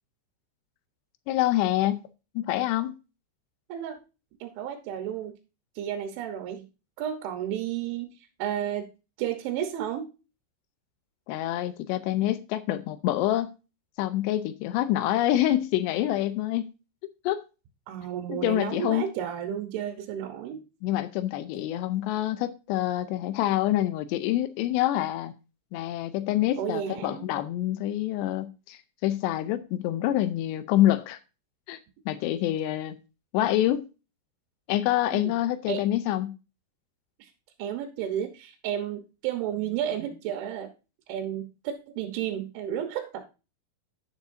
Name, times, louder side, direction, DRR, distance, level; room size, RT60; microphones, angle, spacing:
voice 1, 1.3-2.1 2.4-2.9 11.3-13.5 14.0-16.7 17.3-17.4 18.3-19.1 20.8-25.3 25.7-31.2 31.7-31.8 32.1-33.0 33.3-33.8 34.7-36.3, left 13 dB, 85° left, 2.5 m, -26 dB
voice 2, 4.4-5.4 5.8-6.7 7.0-8.1 8.4-8.9 9.2-10.1 17.9-20.6 26.6-27.3 35.1-35.3 35.7-35.8 37.2-37.3 37.6-40.7 41.1-43.3, right 10 dB, 75° right, 3.4 m, -32 dB
10.5 x 10.5 x 2.7 m
omnidirectional pair, 5.7 m